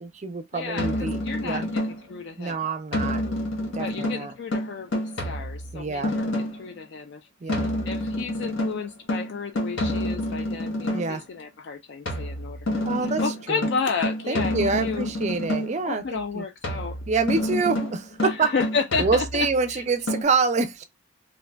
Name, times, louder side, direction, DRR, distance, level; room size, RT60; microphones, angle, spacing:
voice 1, 0.0-1.7 2.4-3.2 3.7-4.3 5.7-6.1 7.4-7.7 10.9-11.2 12.8-13.7 14.3-16.4 17.1-18.5 19.0-20.8, right 4 dB, 35° right, 0.4 m, -26 dB
voice 2, 0.5-2.6 3.8-7.2 7.5-12.8 13.2-15.1 15.8-17.0 18.2-19.8, left 5 dB, 55° left, 0.3 m, -32 dB
sound 1, 0.8-2.2 2.9-6.7 7.5-11.2 12.1-15.9 16.6-19.6 20.1-20.2, left 1 dB, 75° left, 0.9 m, -28 dB
2.5 x 2.2 x 3.3 m
head